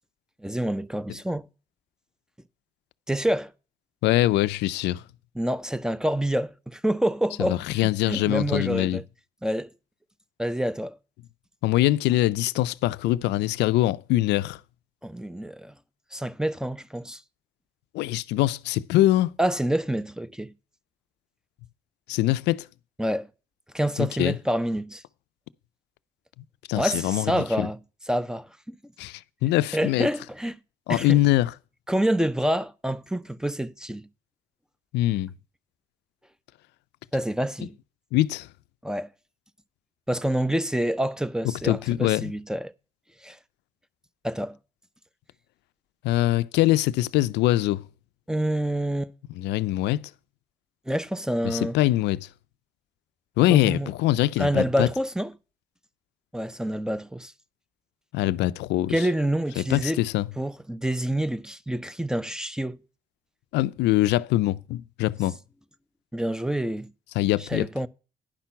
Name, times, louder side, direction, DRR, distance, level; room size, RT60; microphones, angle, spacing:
voice 1, 0.4-1.5 3.1-3.5 5.4-9.0 9.4-9.7 10.4-11.0 15.0-15.7 16.1-17.2 19.4-20.5 23.0-23.3 23.7-25.0 26.7-27.8 28.1-28.8 29.7-30.6 30.9-31.2 31.9-34.1 37.1-37.7 38.8-39.1 40.1-42.7 43.2-43.4 44.2-44.6 48.3-49.1 50.9-51.8 53.5-53.9 54.4-55.3 56.3-57.3 58.9-60.0 60.4-62.8 66.1-66.9 67.4-67.9, right 1 dB, 5° right, 0.6 m, -27 dB
voice 2, 4.0-5.0 7.4-9.0 11.6-14.6 17.9-19.3 22.1-22.7 24.0-24.4 26.7-27.3 27.6-27.7 29.0-30.1 30.9-31.5 34.9-35.3 38.1-38.5 41.6-42.3 46.0-47.8 49.3-50.1 51.4-52.3 53.4-54.9 58.1-59.0 59.6-60.3 63.5-65.4 67.2-67.7, left 15 dB, 75° left, 0.4 m, -23 dB
10.5 x 5.8 x 5.7 m
supercardioid pair, 60°, 18 cm